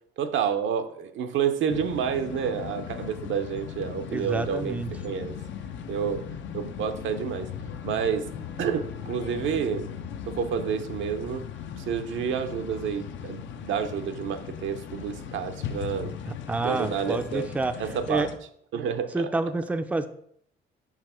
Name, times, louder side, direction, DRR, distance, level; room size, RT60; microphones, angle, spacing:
voice 1, 0.2-4.8 5.0-5.4 5.9-6.3 6.5-7.5 7.8-8.3 8.6-9.9 10.3-11.4 11.8-16.2 16.6-17.5 17.8-18.3 18.7-19.3, right 7 dB, 75° right, 8 dB, 0.6 m, -29 dB
sound 1, 1.7-18.4, left 8 dB, 70° left, 0.6 m, -38 dB
voice 2, 4.1-4.9 16.3-17.8 18.1-18.3 19.1-20.1, right 3 dB, 5° right, 9 dB, 0.4 m, -28 dB
4.9 x 3.5 x 5.5 m, 0.67 s
cardioid pair, 90°, 20 cm